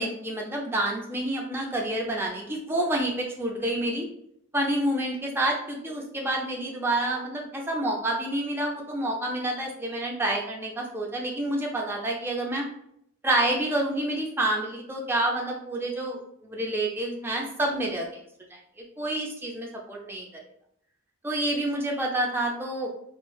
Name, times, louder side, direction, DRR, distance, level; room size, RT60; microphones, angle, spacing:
voice 1, 0.0-4.1 4.5-12.7 13.2-18.2 18.5-18.6 19.0-20.3 21.2-22.9, right 1 dB, 10° right, -1 dB, 0.3 m, -28 dB
4.0 x 2.0 x 2.2 m, 0.71 s
head